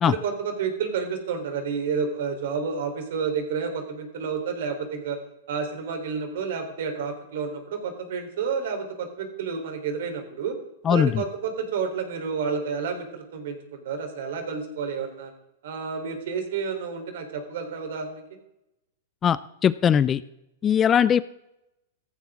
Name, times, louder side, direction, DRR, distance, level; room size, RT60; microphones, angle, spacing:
voice 1, 0.0-5.2 5.5-10.6 10.9-15.3 15.6-18.2, right 5 dB, 65° right, 5 dB, 3.7 m, -30 dB
voice 2, 19.6-20.2 20.6-21.2, left 8 dB, 20° left, 17 dB, 0.4 m, -19 dB
15.5 x 14.5 x 3.7 m, 0.86 s
supercardioid pair, 155°, 0 cm